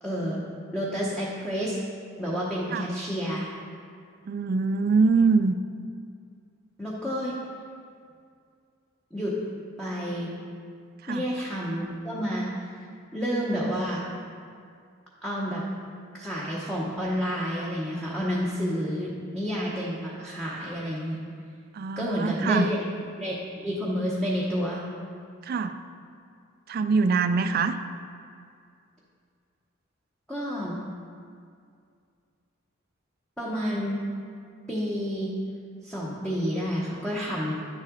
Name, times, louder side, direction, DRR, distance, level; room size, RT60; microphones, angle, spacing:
voice 1, 0.0-0.4 0.7-1.8 2.2-3.5 6.8-7.4 9.1-9.4 9.8-10.4 11.1-12.5 12.7-12.8 13.1-14.0 15.2-15.7 16.1-21.2 22.0-22.8 23.2-24.8 30.3-30.8 33.4-34.0 34.7-35.3 35.8-37.5, equal, 5° left, -6 dB, 0.9 m, -29 dB
voice 2, 4.3-5.5 11.0-11.3 21.7-22.7 25.4-25.8 26.7-27.8, right 4 dB, 50° right, 10 dB, 0.3 m, -23 dB
9.6 x 7.3 x 3.8 m, 2.3 s
head